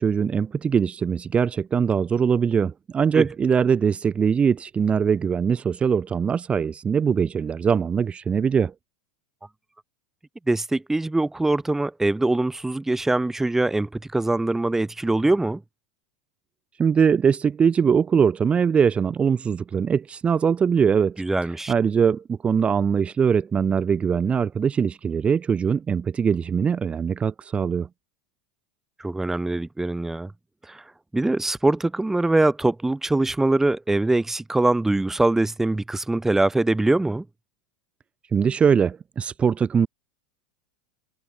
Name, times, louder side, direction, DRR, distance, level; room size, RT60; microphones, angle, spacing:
voice 1, 0.0-8.7 16.8-21.2 21.7-27.9 38.3-39.9, right 6 dB, 25° right, 2.6 m, -22 dB
voice 2, 10.5-15.6 21.2-21.7 29.0-30.3 30.7-30.8 31.1-37.2, right 2 dB, 10° right, 3.4 m, -23 dB
hypercardioid pair, 95°, 5 cm